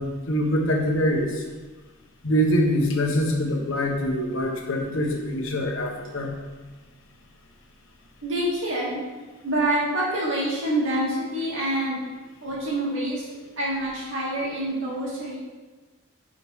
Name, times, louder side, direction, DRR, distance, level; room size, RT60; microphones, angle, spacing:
voice 1, 0.0-1.4 2.2-6.3, equal, 60° left, 1 dB, 1.2 m, -24 dB
voice 2, 8.2-9.0 9.4-12.0 12.4-13.3 13.6-15.4, right 1 dB, 60° right, -6 dB, 2.7 m, -26 dB
10.5 x 5.0 x 3.7 m, 1.3 s
head